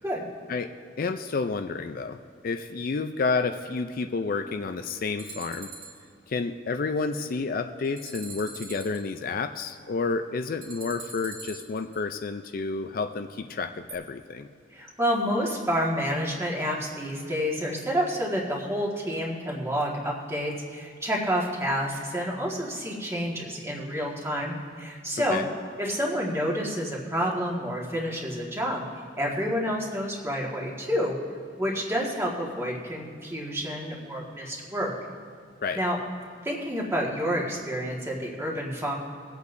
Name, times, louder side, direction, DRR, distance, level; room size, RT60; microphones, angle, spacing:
voice 1, 1.0-2.2 2.4-5.7 6.3-14.5 25.3-25.5 35.6-35.8, left 4 dB, 50° left, 7 dB, 0.4 m, -30 dB
sound 1, 5.2-6.0 7.8-9.0 10.6-12.0 13.9-14.0, right 3 dB, 45° right, 2.5 m, -42 dB
voice 2, 14.7-25.4 25.8-28.8 29.2-31.2 31.6-34.9 35.7-36.0 36.4-38.9, equal, 15° right, -2 dB, 1.7 m, -29 dB
22.0 x 8.2 x 2.6 m, 2.3 s
head